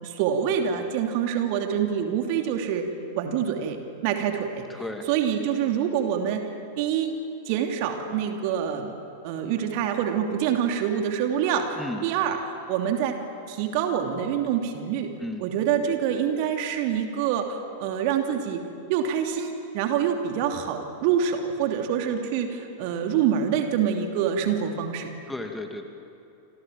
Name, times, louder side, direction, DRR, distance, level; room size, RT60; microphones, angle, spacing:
voice 1, 0.0-2.9 3.2-4.7 5.1-6.5 6.8-7.1 7.5-8.9 9.2-11.8 12.0-12.4 12.7-13.2 13.5-15.1 15.4-18.6 18.9-25.1, right 8 dB, 45° right, 4 dB, 2.8 m, -26 dB
voice 2, 4.7-5.1 11.8-12.0 15.2-15.4 25.3-25.9, left 2 dB, 5° left, 4 dB, 2.7 m, -34 dB
28.5 x 27.5 x 7.6 m, 2.7 s
figure-of-eight pair, 90°, 0 cm